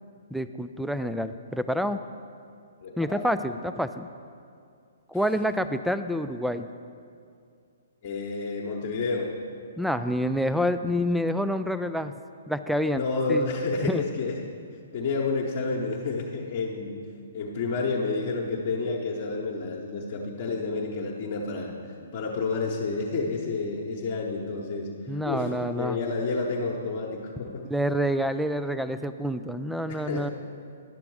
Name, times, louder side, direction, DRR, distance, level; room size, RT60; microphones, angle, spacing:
voice 1, 0.3-2.0 3.0-4.1 5.1-6.7 9.8-12.1 12.5-13.0 13.3-13.5 13.8-14.0 25.1-26.0 27.7-30.3, equal, ahead, 9 dB, 0.3 m, -27 dB
voice 2, 2.8-3.3 8.0-9.3 12.9-14.4 14.9-17.0 17.3-21.7 22.1-24.9 25.2-27.6 29.9-30.3, left 3 dB, 45° left, -3 dB, 1.0 m, -30 dB
11.0 x 6.8 x 4.7 m, 2.3 s
figure-of-eight pair, 125°, 0 cm